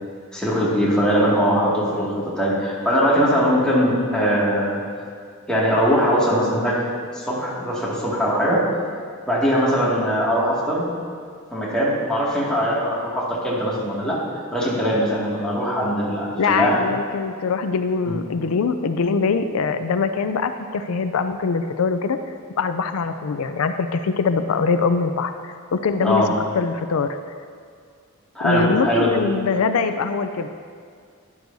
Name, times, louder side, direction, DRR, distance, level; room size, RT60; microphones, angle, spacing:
voice 1, 0.3-4.8 5.5-6.8 7.1-8.6 9.3-10.9 11.5-14.2 14.5-16.8 18.1-18.2 26.0-26.3 28.3-29.1, equal, 5° left, -7 dB, 2.1 m, -21 dB
voice 2, 16.4-22.2 22.6-26.2 26.5-27.1 28.4-30.5, left 5 dB, 85° left, 9 dB, 0.4 m, -23 dB
12.5 x 11.0 x 2.7 m, 2.1 s
head